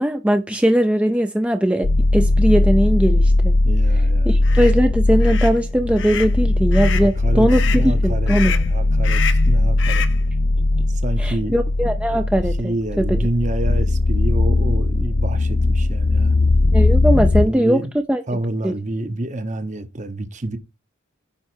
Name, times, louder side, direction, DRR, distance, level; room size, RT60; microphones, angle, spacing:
voice 1, 0.0-3.5 4.2-8.5 11.2-13.2 16.7-18.2 18.6-18.7, equal, 5° right, 0.5 m, -20 dB
sound 1, 1.8-17.5, left 2 dB, 45° left, 0.5 m, -18 dB
voice 2, 3.6-4.6 7.0-10.1 11.0-11.5 12.1-12.3 12.6-16.3 17.3-17.9 18.3-20.6, right 1 dB, 40° right, 1.0 m, -28 dB
sound 2, 4.4-4.7 5.2-5.5 6.0-6.3 6.7-7.1 7.5-7.8 8.3-8.7 9.0-9.5 9.8-10.2, left 8 dB, 65° left, 0.9 m, -28 dB
9.5 x 4.3 x 4.5 m
head